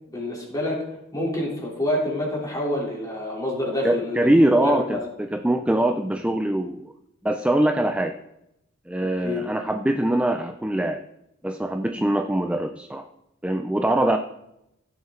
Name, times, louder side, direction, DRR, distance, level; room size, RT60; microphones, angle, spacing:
voice 1, 0.1-0.8 1.1-5.0 9.2-9.4, left 1 dB, 15° left, -3 dB, 3.3 m, -27 dB
voice 2, 3.8-6.8 7.2-8.1 8.9-11.0 11.4-13.1 13.4-14.2, right 1 dB, 5° right, 6 dB, 0.4 m, -22 dB
16.0 x 7.3 x 3.8 m, 0.84 s
head